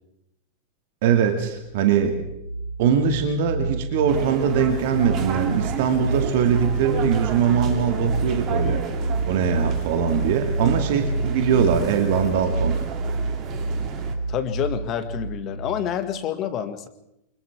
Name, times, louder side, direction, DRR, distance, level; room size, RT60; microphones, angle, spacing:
voice 1, 1.0-2.2 2.8-8.8 9.3-12.8, right 7 dB, 50° right, 6 dB, 2.2 m, -22 dB
sound 1, 1.4-15.9, right 3 dB, 85° left, 1.9 m, -28 dB
sound 2, 4.1-14.1, right 7 dB, 35° right, 2.9 m, -33 dB
voice 2, 11.5-11.9 14.3-16.9, left 10 dB, 35° left, 10 dB, 2.0 m, -28 dB
28.5 x 25.0 x 3.6 m, 0.83 s
figure-of-eight pair, 90°, 0 cm